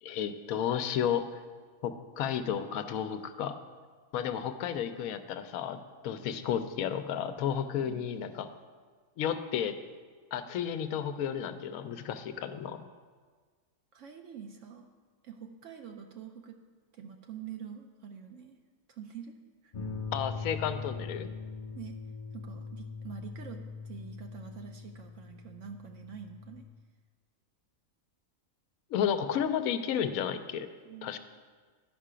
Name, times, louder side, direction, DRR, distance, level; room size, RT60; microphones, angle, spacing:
voice 1, 0.0-1.4 1.8-3.5 4.1-5.8 6.0-8.5 9.2-9.8 10.3-12.8 20.1-21.3 28.9-30.7 31.0-31.2, left 8 dB, 80° left, 10 dB, 1.0 m, -32 dB
voice 2, 13.9-14.9 15.2-16.6 16.9-18.6 18.9-19.4 19.6-19.9 21.7-22.0 22.3-26.7 30.8-31.2, right 7 dB, 70° right, 4 dB, 0.9 m, -46 dB
sound 1, 19.7-26.6, left 4 dB, 45° left, 0.6 m, -41 dB
11.0 x 5.6 x 5.0 m, 1.5 s
omnidirectional pair, 1.5 m